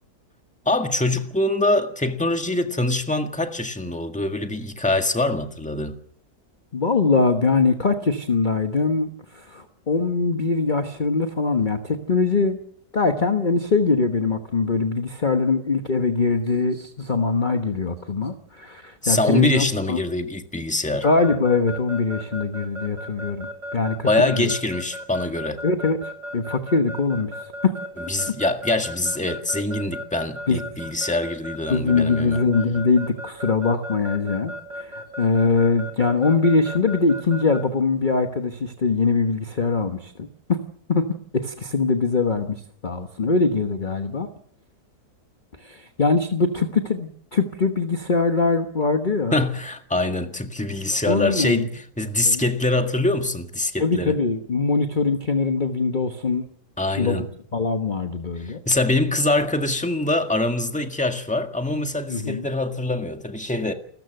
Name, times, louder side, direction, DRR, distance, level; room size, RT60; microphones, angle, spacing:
voice 1, 0.6-5.9 19.0-21.1 24.0-25.6 28.0-32.4 49.3-54.1 56.8-57.3 58.4-63.7, left 2 dB, 5° left, 1.7 m, -24 dB
voice 2, 6.7-12.6 12.9-20.0 21.0-24.5 25.6-26.0 26.3-27.4 27.6-27.7 30.5-30.6 31.7-40.6 40.9-41.0 41.3-44.3 45.6-49.3 50.9-51.7 52.2-52.4 53.8-56.4 57.0-57.3 57.5-58.6 62.1-62.5, left 4 dB, 30° left, 1.2 m, -22 dB
Keyboard (musical) / Alarm, 21.0-37.6, left 1 dB, 75° right, 4.0 m, -34 dB
28.5 x 13.5 x 7.9 m
omnidirectional pair, 1.8 m